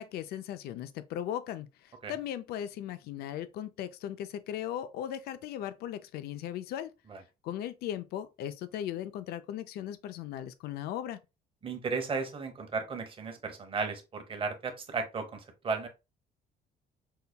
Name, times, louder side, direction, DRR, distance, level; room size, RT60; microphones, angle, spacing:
voice 1, 0.0-6.9 7.4-11.2, left 11 dB, 70° left, 0.4 m, -37 dB
voice 2, 11.6-15.9, right 4 dB, 30° right, 1.0 m, -35 dB
5.5 x 2.2 x 2.2 m
cardioid pair, 110°, 17 cm